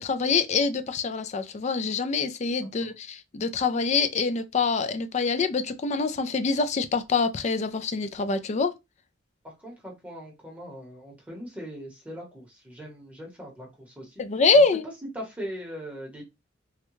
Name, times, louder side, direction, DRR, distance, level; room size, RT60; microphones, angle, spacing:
voice 1, 0.0-8.7 14.2-14.8, left 4 dB, 35° left, 0.4 m, -25 dB
voice 2, 2.6-2.9 9.4-14.2 14.5-14.6 15.1-16.2, equal, 10° right, 0.9 m, -40 dB
3.5 x 2.2 x 3.0 m
head